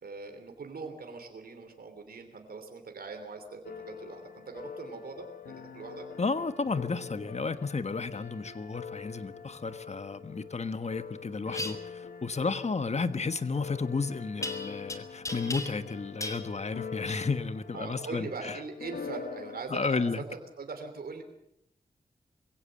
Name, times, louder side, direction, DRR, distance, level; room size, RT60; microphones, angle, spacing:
voice 1, 0.0-3.6 3.8-6.1 17.7-20.2 20.6-21.2, right 4 dB, 80° right, 5 dB, 3.0 m, -41 dB
sound 1, 3.6-19.6, left 6 dB, 85° left, 0.9 m, -44 dB
voice 2, 6.2-18.6 19.7-20.2, left 4 dB, 45° left, 11 dB, 1.4 m, -32 dB
sound 2, 11.5-11.7 14.4-14.9 15.2-15.9 16.2-16.4, left 2 dB, 20° left, 2.9 m, -36 dB
22.5 x 16.5 x 7.6 m, 0.80 s
cardioid pair, 60°, 15 cm